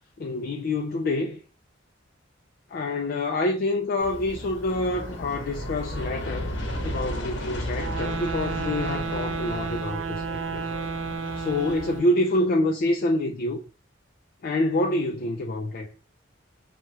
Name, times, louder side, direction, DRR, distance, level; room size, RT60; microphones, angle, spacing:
voice 1, 0.2-1.4 2.7-6.5 6.8-10.7 11.4-13.6 14.4-15.9, left 1 dB, 50° left, 0.4 m, -27 dB
Aircraft, 4.0-12.0, equal, 70° left, 0.9 m, -34 dB
sound 1, 7.7-12.3, right 5 dB, 65° right, 0.3 m, -32 dB
3.0 x 2.3 x 2.7 m
head